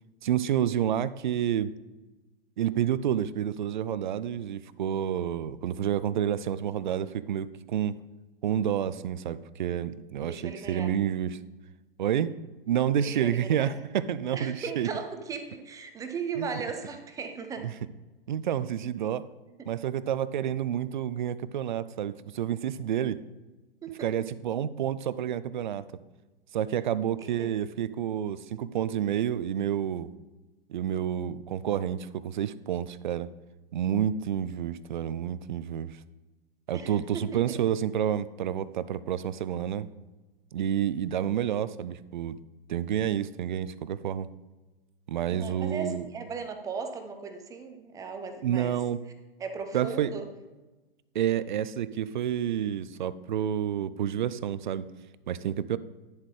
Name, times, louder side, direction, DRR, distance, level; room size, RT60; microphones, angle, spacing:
voice 1, 0.2-1.7 2.6-8.0 8.4-11.4 12.0-12.3 12.7-14.9 16.4-16.6 17.6-17.7 18.3-19.3 19.7-23.2 24.0-26.0 26.5-30.1 30.7-33.3 33.7-36.0 36.7-39.9 40.5-42.4 42.7-44.3 45.1-46.1 48.4-49.0 49.7-50.1 51.1-54.9 55.3-55.8, right 10 dB, 55° right, 16 dB, 0.5 m, -29 dB
voice 2, 10.2-10.9 13.1-13.7 14.3-17.7 23.8-24.1 27.2-27.6 36.7-37.6 45.3-48.8 49.4-50.3, right 5 dB, 10° right, 6 dB, 0.7 m, -37 dB
10.5 x 7.4 x 3.2 m, 1.1 s
figure-of-eight pair, 110°, 29 cm